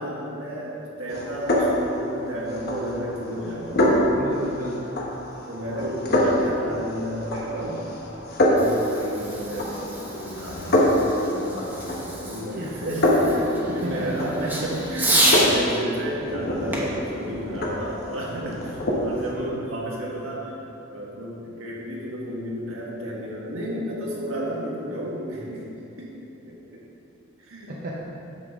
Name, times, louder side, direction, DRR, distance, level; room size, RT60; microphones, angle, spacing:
voice 1, 0.0-3.9 5.5-7.8 8.5-20.5 20.9-25.6 26.0-26.1 26.4-26.8 27.4-27.7, right 1 dB, 80° right, -4 dB, 1.6 m, -32 dB
sound 1, 1.1-19.3, left 1 dB, 50° left, 1.1 m, -26 dB
voice 2, 4.2-4.9 12.5-12.7 13.7-14.5 19.3-19.6 27.7-28.0, right 1 dB, 45° right, -4 dB, 0.8 m, -33 dB
Fireworks, 8.4-15.5 16.7-18.3, right 1 dB, 10° right, 1.1 m, -29 dB
8.6 x 7.0 x 3.6 m, 2.8 s
head